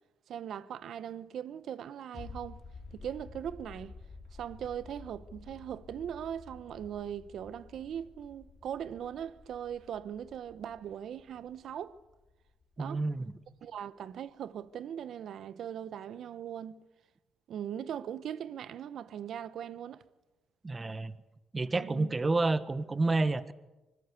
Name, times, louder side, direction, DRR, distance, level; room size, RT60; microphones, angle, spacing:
voice 1, 0.3-2.6 2.9-3.9 4.4-12.0 12.8-13.0 13.6-16.8 17.5-20.0 21.8-22.1, right 9 dB, 70° right, 1.0 m, -40 dB
sound 1, 2.1-13.5 13.8-13.9, left 4 dB, 40° left, 2.8 m, -52 dB
voice 2, 12.8-13.3 20.6-21.2 21.5-23.5, right 3 dB, 25° right, 1.4 m, -29 dB
25.0 x 21.0 x 8.4 m
cardioid pair, 85°, 0 cm